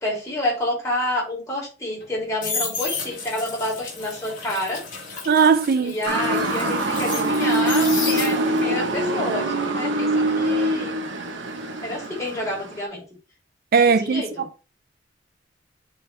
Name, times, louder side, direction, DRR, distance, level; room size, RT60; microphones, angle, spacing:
voice 1, 0.0-4.8 5.8-11.0 11.8-13.0 14.0-14.4, left 1 dB, 15° left, 3.1 m, -28 dB
sound 1, 2.0-8.7 9.1-12.0 12.2-12.6, left 4 dB, 45° left, 3.4 m, -33 dB
voice 2, 5.3-5.9 13.7-14.6, right 5 dB, 50° right, 0.4 m, -19 dB
Motor vehicle (road) / Siren, 6.0-12.8, right 1 dB, 65° right, 1.0 m, -24 dB
8.7 x 3.8 x 3.3 m
head